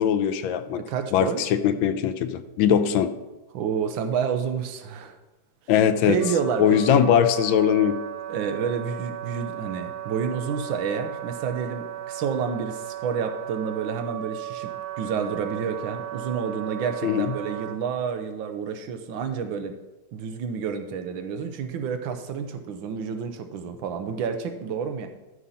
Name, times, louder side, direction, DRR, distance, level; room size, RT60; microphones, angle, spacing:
voice 1, 0.0-0.8 1.1-3.1 5.7-6.2 6.6-8.0 17.0-17.3, left 9 dB, 85° left, 10 dB, 1.4 m, -21 dB
voice 2, 0.8-1.4 3.5-5.2 6.1-7.0 8.3-14.7 15.0-19.7 20.1-25.1, right 6 dB, 80° right, 7 dB, 1.6 m, -29 dB
Wind instrument woodwind instrument, 6.2-17.8, right 11 dB, 55° right, 1.7 m, -36 dB
12.5 x 5.5 x 4.2 m, 1.0 s
omnidirectional pair, 2.1 m